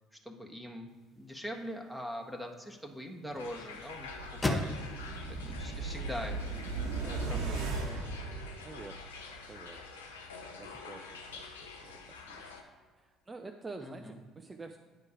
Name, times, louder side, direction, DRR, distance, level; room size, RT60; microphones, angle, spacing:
voice 1, 0.1-0.9 1.2-4.1 4.5-4.8 5.4-6.4 7.0-7.8 13.8-14.2, equal, ahead, 2 dB, 1.3 m, -42 dB
sound 1, 0.9-7.0, left 2 dB, 20° left, 1.0 m, -41 dB
sound 2, 3.4-12.6, left 4 dB, 85° left, 0.7 m, -47 dB
sound 3, 4.0-9.1 9.5-9.6, right 3 dB, 65° right, 1.2 m, -37 dB
voice 2, 8.6-9.1 9.5-9.8 10.6-11.9 12.3-12.5 13.0-14.8, right 3 dB, 25° right, 4 dB, 0.6 m, -48 dB
9.6 x 4.5 x 4.9 m, 1.4 s
hypercardioid pair, 55°, 0 cm